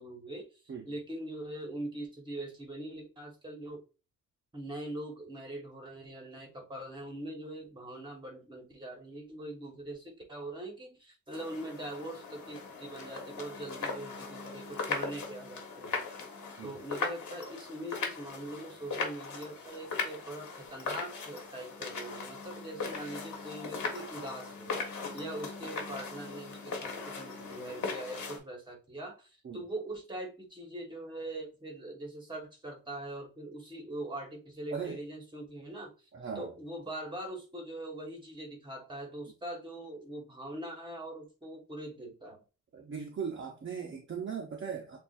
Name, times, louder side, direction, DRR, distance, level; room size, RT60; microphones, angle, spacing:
voice 1, 0.0-3.8 4.5-16.1 16.6-36.1 36.3-42.4, right 1 dB, 15° right, 1.2 m, -42 dB
sound 1, 11.3-28.4, left 4 dB, 60° left, 1.4 m, -39 dB
voice 2, 36.1-36.5 42.7-45.0, right 6 dB, 35° right, 0.7 m, -38 dB
7.0 x 2.5 x 2.5 m
wide cardioid pair, 175°, 33 cm